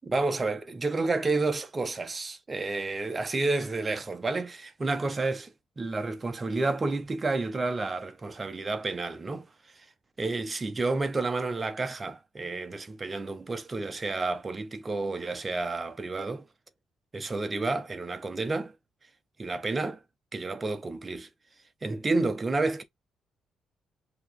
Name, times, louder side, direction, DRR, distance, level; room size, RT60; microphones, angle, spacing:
voice 1, 0.0-9.5 9.8-9.9 10.2-16.5 17.1-18.7 19.4-20.0 20.3-21.3 21.8-22.8, right 3 dB, 20° right, 0.6 m, -30 dB
5.8 x 2.8 x 3.1 m
cardioid pair, 150°, 0 cm